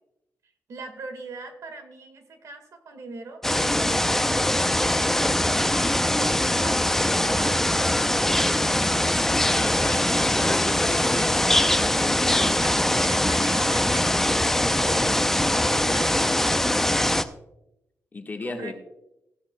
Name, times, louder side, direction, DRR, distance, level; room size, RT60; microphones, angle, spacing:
voice 1, 0.7-4.6 5.2-8.8 12.6-15.2 15.7-16.5 18.4-18.7, right 3 dB, 65° right, 7 dB, 1.6 m, -40 dB
sound 1, 3.4-17.2, left 1 dB, 5° left, 0.5 m, -22 dB
voice 2, 9.4-12.5 15.0-15.1 18.1-18.7, left 3 dB, 30° left, 3 dB, 1.4 m, -34 dB
15.5 x 11.0 x 2.2 m, 0.87 s
cardioid pair, 105°, 6 cm